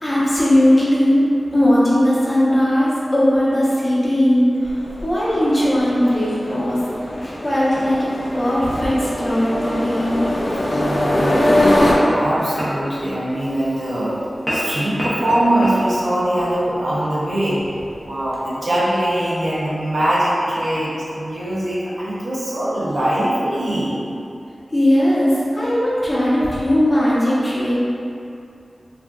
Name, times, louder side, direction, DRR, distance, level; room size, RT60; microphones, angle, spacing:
voice 1, 0.0-4.8 5.0-6.8 7.2-10.2 24.7-27.7, equal, 30° left, -9 dB, 0.8 m, -18 dB
sound 1, 4.7-11.9, left 1 dB, 55° left, 0.4 m, -22 dB
sound 2, 5.5-20.7, equal, ahead, 0.7 m, -34 dB
voice 2, 10.7-14.2 14.5-17.7 18.0-24.0, right 1 dB, 70° right, -8 dB, 0.6 m, -22 dB
3.4 x 2.5 x 2.2 m, 2.7 s
wide cardioid pair, 95°, 0 cm